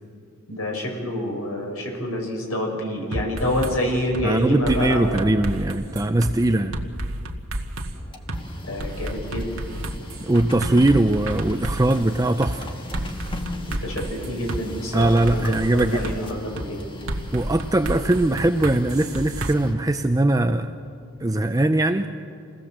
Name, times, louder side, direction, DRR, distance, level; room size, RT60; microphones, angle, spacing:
voice 1, 0.5-5.1 8.6-9.5 13.7-16.8, left 1 dB, 75° left, 0 dB, 5.6 m, -27 dB
sound 1, 3.1-3.8 4.1-4.3 4.7-6.3 6.7-7.9 8.3-8.4 8.8-12.0 12.4-12.6 12.9-14.6 15.0-16.2 16.6-16.7 17.1-19.5, right 1 dB, 65° right, 1.8 m, -30 dB
voice 2, 4.2-6.7 10.2-12.7 14.9-16.1 17.3-20.7 21.2-22.1, right 1 dB, 15° right, 7 dB, 0.5 m, -21 dB
Printer, 8.0-20.0, left 1 dB, 20° left, 1.5 m, -39 dB
27.5 x 18.0 x 7.4 m, 2.6 s
head